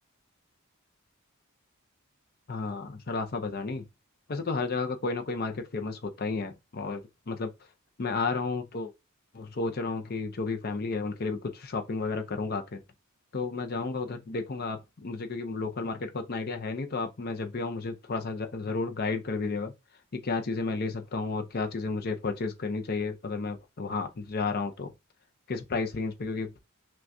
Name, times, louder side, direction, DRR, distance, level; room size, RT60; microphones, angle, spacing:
voice 1, 2.5-3.8 4.3-7.5 8.0-8.9 9.3-12.8 13.3-19.7 20.1-24.9 25.5-26.5, left 3 dB, 45° left, 0.6 m, -32 dB
5.9 x 2.3 x 2.6 m
head